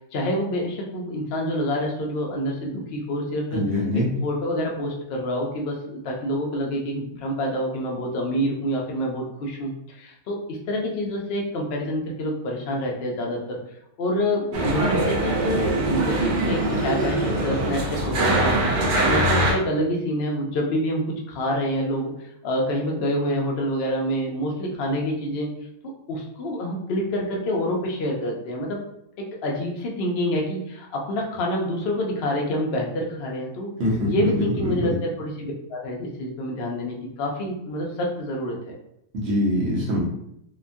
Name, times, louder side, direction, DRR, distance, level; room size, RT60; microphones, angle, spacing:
voice 1, 0.1-13.6 14.0-18.5 19.1-25.5 26.1-28.8 29.2-33.7 34.1-38.8 39.3-39.4, equal, 65° left, -1 dB, 0.6 m, -27 dB
voice 2, 3.5-4.1 33.8-34.9 39.1-40.0, left 1 dB, 60° right, -4 dB, 1.1 m, -23 dB
sound 1, 14.5-19.5, right 1 dB, 90° right, 1.2 m, -22 dB
2.8 x 2.2 x 2.5 m, 0.77 s
omnidirectional pair, 1.5 m